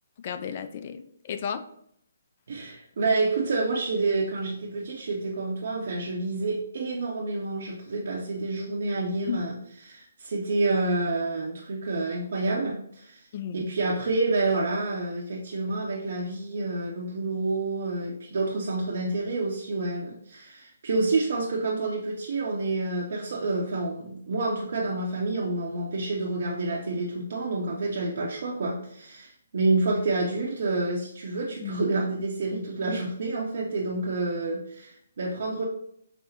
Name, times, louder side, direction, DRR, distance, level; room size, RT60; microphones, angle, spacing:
voice 1, 0.2-1.6 9.3-9.4 13.3-13.6 31.6-31.8, left 7 dB, 40° left, 9 dB, 0.3 m, -33 dB
voice 2, 2.5-9.6 9.8-13.2 13.5-35.6, right 3 dB, 55° right, -3 dB, 0.5 m, -28 dB
4.9 x 2.0 x 2.8 m, 0.70 s
figure-of-eight pair, 140°, 0 cm